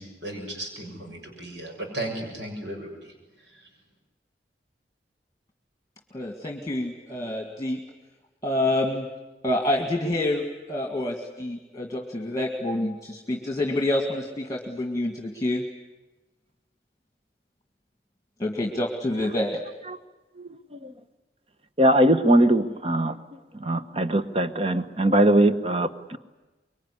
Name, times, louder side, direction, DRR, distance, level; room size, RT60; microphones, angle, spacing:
voice 1, 0.0-3.1 3.4-3.6, right 1 dB, 85° right, 2 dB, 7.1 m, -35 dB
voice 2, 6.1-7.8 8.4-9.1 9.4-15.6 18.4-19.6, left 1 dB, 20° left, 3 dB, 1.9 m, -27 dB
voice 3, 21.8-23.2 23.6-26.2, right 1 dB, 35° right, 10 dB, 1.2 m, -21 dB
24.5 x 23.0 x 9.9 m, 1.1 s
head